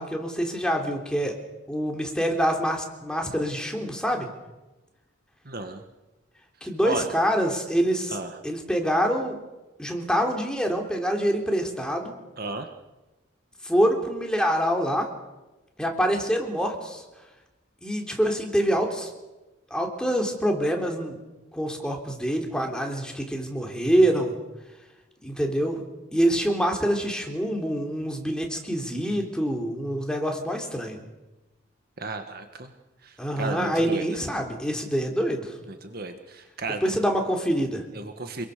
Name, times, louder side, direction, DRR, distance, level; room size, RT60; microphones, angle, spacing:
voice 1, 0.0-1.3 1.7-4.3 6.6-8.2 8.4-9.4 9.8-12.1 13.6-15.1 15.8-17.0 17.8-19.1 19.7-21.2 21.5-24.4 25.2-25.8 26.1-31.0 33.2-35.5 36.8-37.8, equal, 5° left, 2 dB, 3.6 m, -25 dB
voice 2, 5.5-5.8 6.8-7.1 8.1-8.4 12.4-12.7 32.0-32.7 33.0-34.2 35.7-37.0 37.9-38.5, right 2 dB, 50° right, 6 dB, 1.7 m, -34 dB
27.5 x 22.5 x 6.8 m, 1.1 s
head